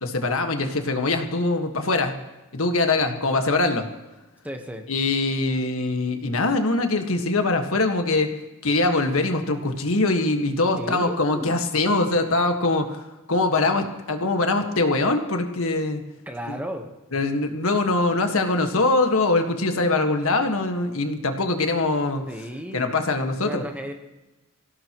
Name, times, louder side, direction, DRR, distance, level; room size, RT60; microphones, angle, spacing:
voice 1, 0.0-2.1 2.5-3.9 4.9-8.3 8.6-13.0 13.3-16.0 16.5-16.6 17.1-22.2 22.7-23.6, left 2 dB, 65° left, 5 dB, 1.7 m, -23 dB
voice 2, 4.4-4.9 10.8-11.6 16.3-16.9 22.3-22.9 23.4-23.9, equal, 5° right, 5 dB, 1.2 m, -34 dB
26.0 x 17.0 x 3.1 m, 1.1 s
head